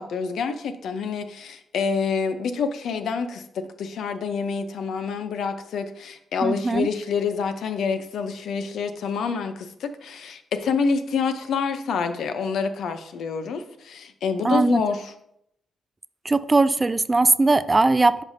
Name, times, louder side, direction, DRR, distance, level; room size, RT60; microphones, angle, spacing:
voice 1, 0.0-15.1, left 5 dB, 75° left, 9 dB, 0.6 m, -27 dB
voice 2, 6.4-6.9 14.4-14.8 16.3-18.2, right 3 dB, 25° right, 15 dB, 0.3 m, -19 dB
9.7 x 5.4 x 2.7 m, 0.76 s
cardioid pair, 85°, 0 cm